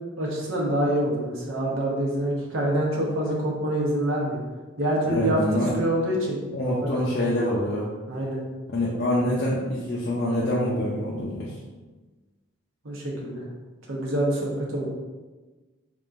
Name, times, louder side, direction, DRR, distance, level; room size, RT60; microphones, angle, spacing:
voice 1, 0.2-4.4 4.8-5.4 5.7-6.4 6.8-6.9 8.1-8.4 12.8-13.4 13.9-14.9, right 1 dB, 80° right, -2 dB, 0.8 m, -26 dB
voice 2, 5.1-5.7 6.5-7.9 8.7-11.5, left 1 dB, 50° left, -6 dB, 0.6 m, -25 dB
3.7 x 3.6 x 2.5 m, 1.2 s
head